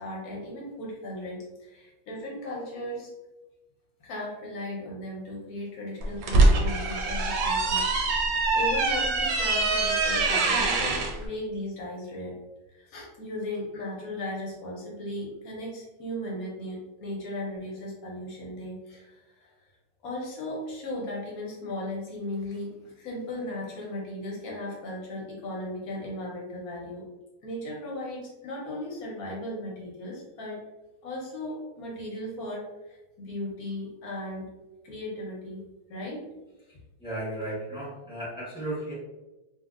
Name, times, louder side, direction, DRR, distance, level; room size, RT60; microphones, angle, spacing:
voice 1, 0.0-3.1 4.0-12.4 12.7-19.5 20.0-27.0 27.4-30.6 31.0-34.5 34.8-36.2, left 1 dB, 60° left, -3 dB, 1.1 m, -36 dB
sound 1, 6.0-11.1, right 3 dB, 75° right, 1.2 m, -24 dB
voice 2, 37.0-38.9, right 1 dB, 5° right, -8 dB, 0.8 m, -34 dB
3.0 x 2.8 x 2.3 m, 1.1 s
omnidirectional pair, 2.0 m